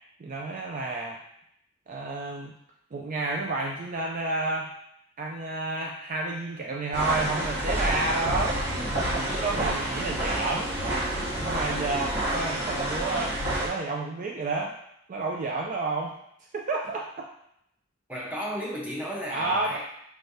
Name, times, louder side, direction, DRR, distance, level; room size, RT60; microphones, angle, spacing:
voice 1, 0.2-1.2 1.9-2.6 2.9-4.7 5.2-8.6 9.1-10.7 11.4-14.8 15.1-16.2 16.5-17.3 19.3-19.8, right 2 dB, 45° right, 0 dB, 0.4 m, -30 dB
sound 1, 6.9-13.7, right 1 dB, 60° right, 1.6 m, -28 dB
voice 2, 18.1-19.8, equal, 10° right, -5 dB, 0.9 m, -33 dB
4.6 x 3.3 x 2.7 m, 0.74 s
head